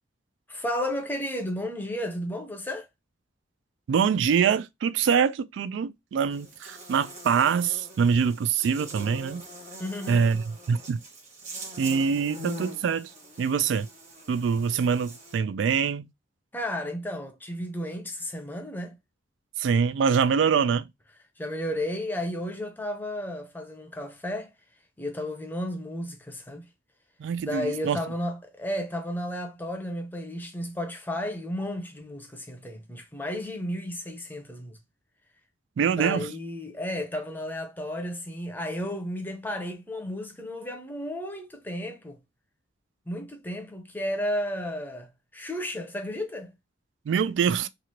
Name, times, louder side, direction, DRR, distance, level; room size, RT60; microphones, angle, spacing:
voice 1, 0.5-2.9 9.8-10.2 16.5-19.0 21.4-24.5 25.0-26.7 27.4-34.8 36.0-42.2 43.1-46.5, left 1 dB, 10° left, 0.6 m, -33 dB
voice 2, 3.9-9.4 10.1-11.0 11.8-13.1 13.4-13.9 14.3-16.1 19.6-20.9 27.2-28.0 35.8-36.3 47.1-47.7, right 6 dB, 85° right, 0.3 m, -24 dB
Buzz, 6.3-15.4, equal, 40° right, 1.2 m, -43 dB
3.1 x 2.4 x 2.8 m
head